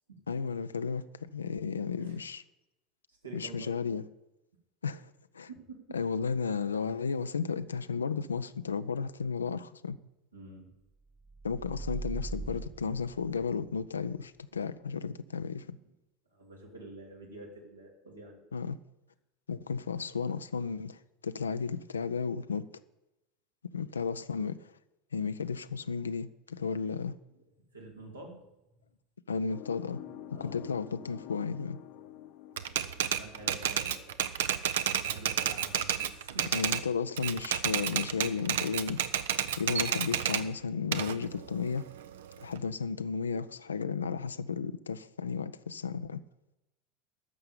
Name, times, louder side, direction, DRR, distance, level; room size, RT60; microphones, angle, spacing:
voice 1, 0.3-2.4 3.3-4.0 4.8-5.5 5.9-10.0 11.4-15.8 18.5-18.8 19.5-22.7 23.7-24.7 25.1-27.2 29.3-30.0 30.3-31.8 36.5-39.0 39.5-41.9 42.4-46.2, left 5 dB, 75° left, 0.4 m, -34 dB
voice 2, 3.1-3.7 5.5-6.0 10.3-10.7 14.5-14.7 16.3-18.4 27.3-27.4 27.7-28.4 30.3-30.6 32.9-34.2 35.0-36.5, right 2 dB, 80° right, 2.7 m, -48 dB
sound 1, 11.2-13.8, right 3 dB, 15° right, 0.6 m, -40 dB
sound 2, 29.5-33.8, left 12 dB, 55° left, 0.9 m, -48 dB
Typewriter, 32.6-36.8 37.2-40.4 40.9-42.6, right 9 dB, 65° right, 0.6 m, -31 dB
11.0 x 6.7 x 8.6 m
figure-of-eight pair, 75°, 0 cm